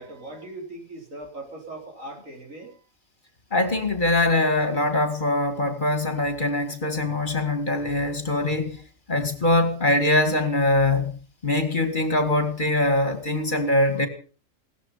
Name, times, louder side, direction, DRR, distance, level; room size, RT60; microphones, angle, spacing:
voice 1, 0.0-2.8 13.5-14.1, right 2 dB, 75° right, 4.7 m, -40 dB
voice 2, 3.5-8.8 9.1-11.2 11.4-14.1, left 2 dB, 35° left, 2.1 m, -23 dB
17.5 x 14.0 x 5.6 m
omnidirectional pair, 1.4 m